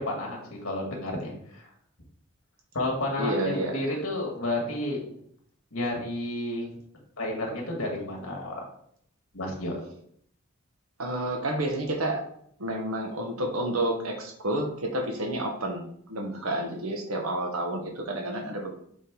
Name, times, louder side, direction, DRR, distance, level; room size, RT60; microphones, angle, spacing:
voice 1, 0.0-1.7 2.7-5.0 5.7-6.7 7.2-8.6 9.3-9.7, left 1 dB, 75° left, -1 dB, 2.1 m, -31 dB
voice 2, 3.2-4.0 11.0-12.2 12.6-15.8 16.1-18.7, right 1 dB, 80° right, 3 dB, 1.2 m, -30 dB
7.3 x 3.8 x 3.8 m, 0.68 s
head